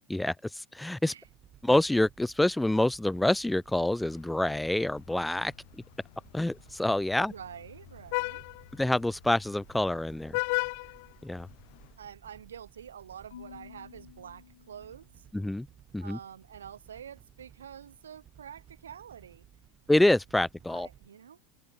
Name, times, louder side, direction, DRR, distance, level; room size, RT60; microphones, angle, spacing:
voice 1, 0.1-1.1 1.6-5.8 6.3-7.3 8.7-10.4 11.2-11.5 15.3-15.7 15.9-16.2 19.9-20.9, left 1 dB, 5° left, 0.8 m, -27 dB
sound 1, 1.2-21.1, right 10 dB, 35° right, 4.5 m, -58 dB
Vehicle horn car horn honking, 3.8-11.9, left 30 dB, 65° left, 1.3 m, -38 dB
voice 2, 7.2-8.4 12.0-15.2 16.0-19.4 20.7-21.4, right 8 dB, 90° right, 0.8 m, -47 dB
Marimba xylophone / Wood, 13.3-15.5, left 9 dB, 85° left, 3.5 m, -52 dB
open air
hypercardioid pair, 95°, 0 cm